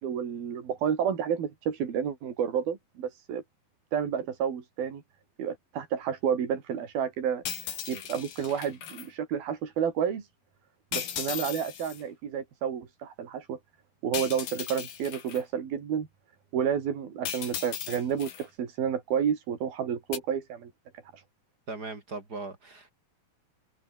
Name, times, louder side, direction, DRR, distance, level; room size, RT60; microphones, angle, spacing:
voice 1, 0.0-3.4 3.9-5.0 5.4-7.4 7.9-10.3 10.9-13.6 14.0-16.1 16.5-20.7 21.1-21.2, right 8 dB, 75° right, 4.9 m, -30 dB
sound 1, 7.4-9.1 10.9-12.0 14.1-15.4 17.2-18.4 20.1-20.2, left 9 dB, 80° left, 4.9 m, -36 dB
voice 2, 21.7-22.9, right 3 dB, 25° right, 3.5 m, -39 dB
omnidirectional pair, 4.3 m